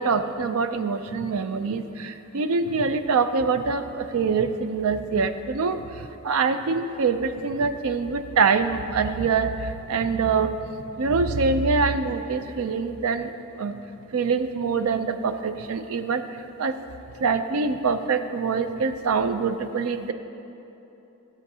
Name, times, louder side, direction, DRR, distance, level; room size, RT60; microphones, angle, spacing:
voice 1, 0.0-5.8 6.2-10.5 11.0-13.3 13.6-13.7 14.1-16.2 16.6-16.7 17.2-20.1, right 4 dB, 85° right, 10 dB, 0.4 m, -24 dB
15.5 x 7.0 x 2.7 m, 3.0 s
head